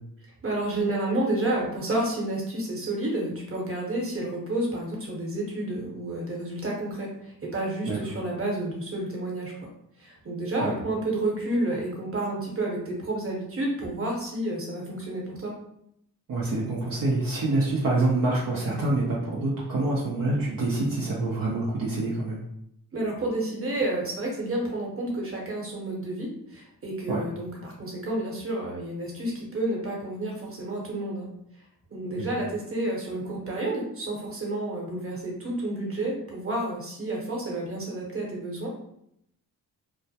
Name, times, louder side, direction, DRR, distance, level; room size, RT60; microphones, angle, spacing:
voice 1, 0.4-9.5 10.0-15.5 22.9-31.3 31.9-38.7, right 1 dB, 35° right, -2 dB, 1.0 m, -30 dB
voice 2, 16.3-22.4 27.1-27.2 32.2-32.4, right 2 dB, 60° right, -5 dB, 0.7 m, -26 dB
2.2 x 2.1 x 2.7 m, 0.74 s
cardioid pair, 50°, 38 cm